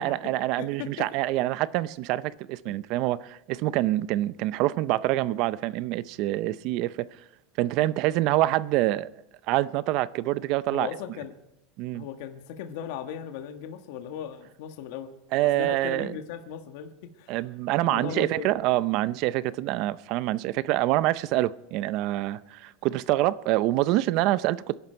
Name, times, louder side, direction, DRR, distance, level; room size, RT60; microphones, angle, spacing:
voice 1, 0.0-7.1 7.6-9.1 9.5-10.9 11.8-12.0 15.3-16.2 17.3-24.8, right 16 dB, 50° right, 0.6 m, -26 dB
voice 2, 0.6-1.1 2.6-2.8 10.7-11.3 11.9-15.1 15.5-17.3 17.8-18.5, left 9 dB, 65° left, 1.6 m, -37 dB
26.5 x 11.5 x 4.5 m
supercardioid pair, 160°, 0 cm